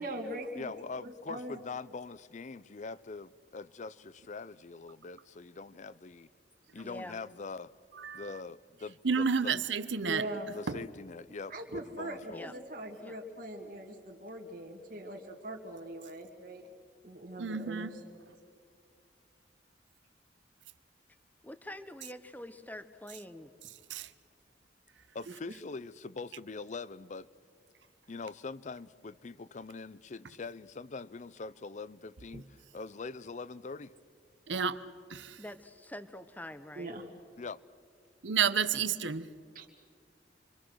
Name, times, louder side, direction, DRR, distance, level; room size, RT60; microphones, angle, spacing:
voice 1, 0.0-0.7 1.0-1.6 10.0-10.5 11.5-16.7 17.0-17.9 25.3-25.4 36.8-37.1 39.5-39.7, right 1 dB, 50° right, 2.2 m, -41 dB
voice 2, 0.6-6.3 6.7-7.7 8.1-9.5 10.5-12.5 25.1-27.3 28.1-33.9 37.4-37.6, left 4 dB, 40° left, 0.5 m, -43 dB
voice 3, 6.8-7.2 10.8-10.9 11.5-11.6 12.3-12.5 12.9-13.2 21.4-23.5 34.5-34.6 35.4-37.0, left 1 dB, 10° left, 0.9 m, -46 dB
voice 4, 8.0-8.4 9.0-10.3 10.7-10.8 17.4-18.0 23.9-24.1 32.3-32.4 34.5-34.8 35.1-35.4 38.2-39.3, right 6 dB, 85° right, 0.9 m, -31 dB
28.0 x 24.5 x 6.3 m
head